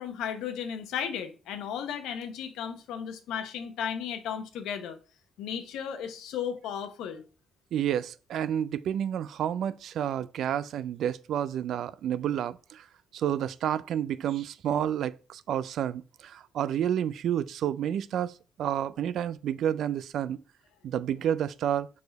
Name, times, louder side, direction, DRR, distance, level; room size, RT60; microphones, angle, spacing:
voice 1, 0.0-5.0 5.4-7.2, left 8 dB, 90° left, 0.9 m, -35 dB
voice 2, 7.7-12.9 13.1-20.4 20.8-21.9, right 10 dB, 75° right, 0.4 m, -30 dB
4.9 x 4.8 x 5.1 m
cardioid pair, 90°, 0 cm